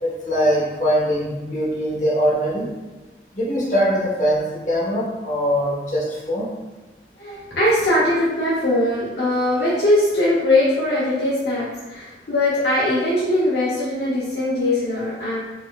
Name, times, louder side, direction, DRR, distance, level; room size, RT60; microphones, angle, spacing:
voice 1, 0.0-2.6 3.3-6.5, equal, 40° left, -7 dB, 1.0 m, -22 dB
voice 2, 7.2-15.4, left 1 dB, 65° left, -7 dB, 0.6 m, -20 dB
3.8 x 2.4 x 2.3 m, 1.2 s
head